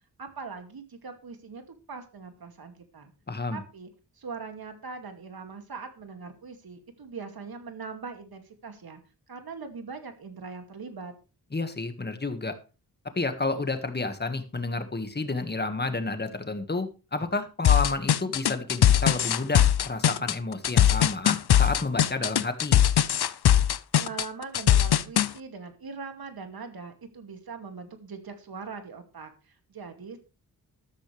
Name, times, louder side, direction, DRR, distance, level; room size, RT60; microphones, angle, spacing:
voice 1, 0.2-3.1 3.5-3.9 4.2-9.0 9.3-11.1 23.9-30.2, right 4 dB, 70° right, 6 dB, 2.5 m, -41 dB
voice 2, 3.3-3.6 11.5-12.5 13.2-22.8, left 3 dB, 25° left, 8 dB, 1.7 m, -30 dB
sound 1, 17.6-25.3, left 10 dB, 80° left, 0.7 m, -20 dB
13.0 x 13.0 x 3.4 m, 0.31 s
wide cardioid pair, 140°, 38 cm